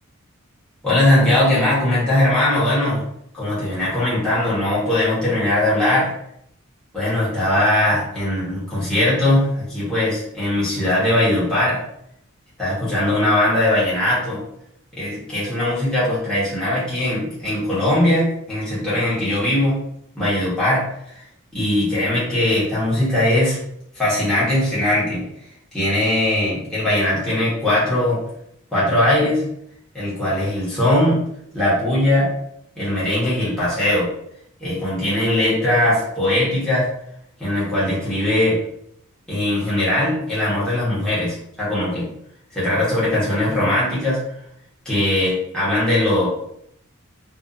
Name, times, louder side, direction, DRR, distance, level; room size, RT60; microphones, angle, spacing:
voice 1, 0.8-3.0 3.3-6.1 6.9-11.8 12.6-14.4 14.9-19.8 20.1-21.2 21.5-23.6 23.9-25.3 25.7-28.2 28.7-29.4 29.9-31.2 31.5-32.3 32.8-34.1 34.6-36.9 37.4-38.6 39.3-42.1 42.5-44.2 44.8-46.3, left 1 dB, 5° left, -10 dB, 1.0 m, -20 dB
2.5 x 2.4 x 2.4 m, 0.73 s
head